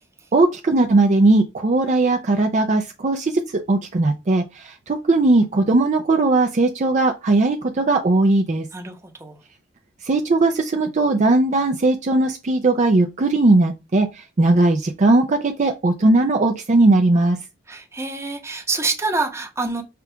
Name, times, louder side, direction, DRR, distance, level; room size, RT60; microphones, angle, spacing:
voice 1, 0.3-8.7 10.0-17.4, right 2 dB, 40° right, 0.5 m, -18 dB
voice 2, 8.7-9.4 17.7-19.8, right 3 dB, 15° right, 0.9 m, -26 dB
5.9 x 2.4 x 3.4 m
head